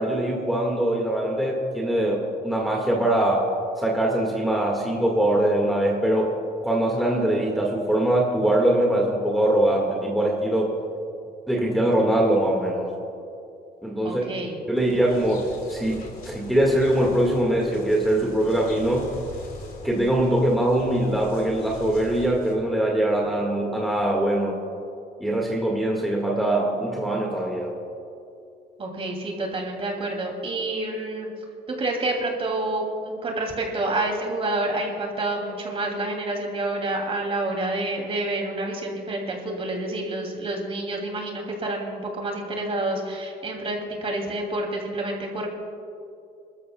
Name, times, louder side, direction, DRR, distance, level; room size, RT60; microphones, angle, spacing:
voice 1, 0.0-3.5 3.8-6.3 6.6-10.7 11.5-12.9 13.8-14.2 14.7-19.1 19.8-24.6 25.2-27.7, right 1 dB, ahead, -2 dB, 1.8 m, -22 dB
voice 2, 14.0-14.6 28.8-31.3 31.7-45.5, right 2 dB, 35° right, 1 dB, 2.7 m, -28 dB
sound 1, 14.7-22.5, left 3 dB, 65° left, 3.4 m, -42 dB
26.5 x 13.5 x 2.3 m, 2.6 s
cardioid pair, 110°, 17 cm